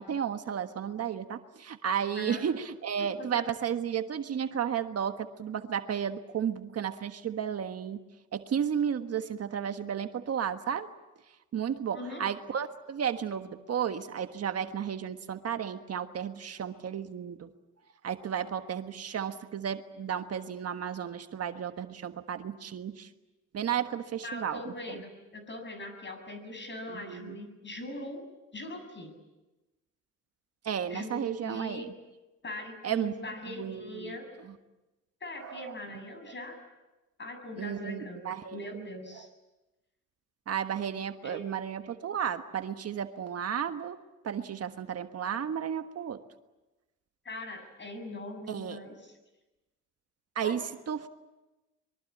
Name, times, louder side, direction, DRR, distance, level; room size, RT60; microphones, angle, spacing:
voice 1, 0.0-8.0 8.3-10.9 11.5-17.5 18.0-23.1 23.5-24.7 26.9-27.4 30.6-31.9 32.8-33.1 33.5-34.2 35.4-35.7 37.6-38.9 39.1-39.3 40.5-44.0 44.2-46.2 48.5-48.8 50.3-51.1, right 8 dB, 55° right, 8 dB, 1.4 m, -33 dB
voice 2, 11.9-12.3 24.2-28.2 28.5-29.1 30.9-31.9 32.4-34.3 35.2-36.6 37.2-39.3 41.2-41.4 47.2-49.2 50.4-50.6, left 1 dB, 40° left, 7 dB, 7.2 m, -41 dB
24.5 x 23.0 x 8.6 m, 1.1 s
cardioid pair, 90°, 30 cm